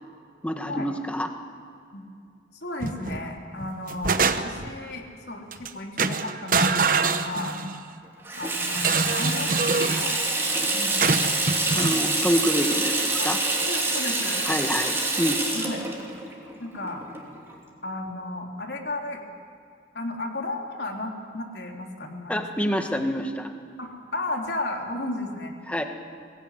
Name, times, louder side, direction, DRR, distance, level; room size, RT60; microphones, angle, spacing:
voice 1, 0.4-1.3 11.7-13.4 14.4-15.4 22.3-23.5 25.7-25.8, equal, 10° left, 5 dB, 1.6 m, -27 dB
voice 2, 2.6-7.6 8.3-11.4 13.2-13.3 13.6-14.5 15.5-15.8 16.6-17.0 17.8-19.2 19.9-22.4 23.8-25.5, left 2 dB, 75° left, 1 dB, 3.2 m, -34 dB
sound 1, 2.8-3.2 3.6-4.7 5.5-5.7 6.0-7.8 8.7-10.1 11.0-12.0, right 4 dB, 50° right, 1.0 m, -25 dB
Water tap faucet / Sink (filling or washing), 8.2-17.6, right 2 dB, 15° right, 3.0 m, -26 dB
23.0 x 18.5 x 9.3 m, 2.3 s
head